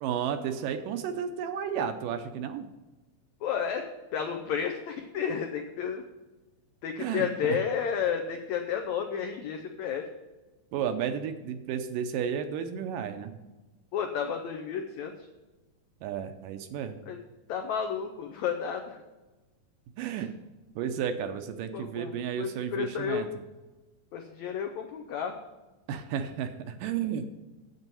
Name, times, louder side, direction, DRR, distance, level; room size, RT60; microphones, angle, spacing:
voice 1, 0.0-2.7 7.0-7.6 10.7-13.4 16.0-17.0 20.0-20.3 20.8-23.3 25.9-27.3, right 8 dB, 80° right, 8 dB, 2.1 m, -32 dB
voice 2, 3.4-3.9 4.1-6.1 6.8-10.1 13.9-15.3 17.1-17.2 17.5-19.0 20.1-20.2 21.7-23.3 24.1-25.4, left 7 dB, 85° left, 5 dB, 1.6 m, -32 dB
8.1 x 7.9 x 5.4 m, 1.1 s
omnidirectional pair, 4.2 m